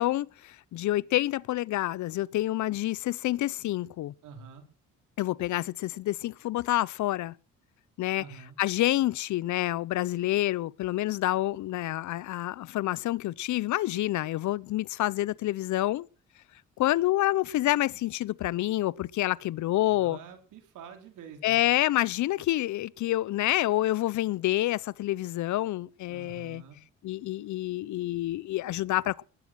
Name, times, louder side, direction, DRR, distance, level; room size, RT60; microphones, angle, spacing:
voice 1, 0.0-4.1 5.2-7.3 8.0-8.2 8.6-16.1 16.8-20.2 21.4-26.6 27.0-29.2, left 15 dB, 75° left, 0.6 m, -28 dB
voice 2, 4.2-4.6 8.1-8.6 19.9-21.6 26.1-26.8, right 7 dB, 85° right, 4.5 m, -47 dB
19.5 x 9.2 x 6.2 m
cardioid pair, 90°, 30 cm